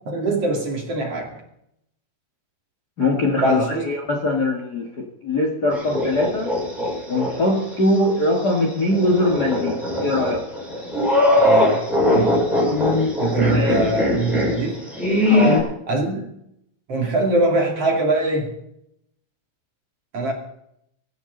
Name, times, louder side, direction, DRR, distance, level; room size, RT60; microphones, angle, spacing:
voice 1, 0.0-1.3 3.4-3.8 11.4-12.4 13.2-14.9 15.9-16.3 16.9-18.6 20.1-20.3, right 2 dB, 40° right, 1 dB, 2.6 m, -22 dB
voice 2, 3.0-6.5 7.1-10.4 13.4-13.8 15.3-15.8, left 2 dB, 85° left, 1 dB, 0.8 m, -22 dB
sound 1, 5.7-7.3 7.7-7.8 8.9-15.6, left 1 dB, ahead, 6.1 m, -20 dB
23.5 x 12.0 x 4.0 m, 0.77 s
omnidirectional pair, 5.3 m